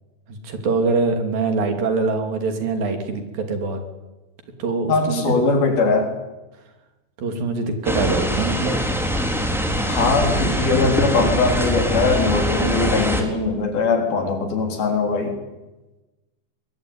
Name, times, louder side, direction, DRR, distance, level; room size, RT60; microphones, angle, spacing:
voice 1, 0.3-3.8 4.6-5.4 7.2-8.8, right 3 dB, 70° right, 6 dB, 4.7 m, -23 dB
voice 2, 4.9-6.1 9.9-15.3, left 4 dB, 75° left, 4 dB, 5.6 m, -21 dB
sound 1, 7.8-13.2, equal, ahead, 3.2 m, -23 dB
23.5 x 21.5 x 9.6 m, 1.1 s
omnidirectional pair, 4.3 m